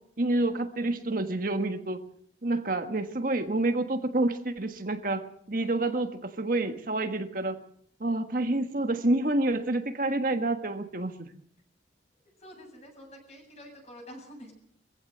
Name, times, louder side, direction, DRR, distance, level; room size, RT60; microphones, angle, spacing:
voice 1, 0.2-2.0 2.4-7.6 8.0-11.3, right 2 dB, 50° right, 6 dB, 1.5 m, -28 dB
voice 2, 12.4-14.5, equal, 35° left, 2 dB, 7.9 m, -47 dB
23.0 x 15.5 x 7.9 m, 0.67 s
head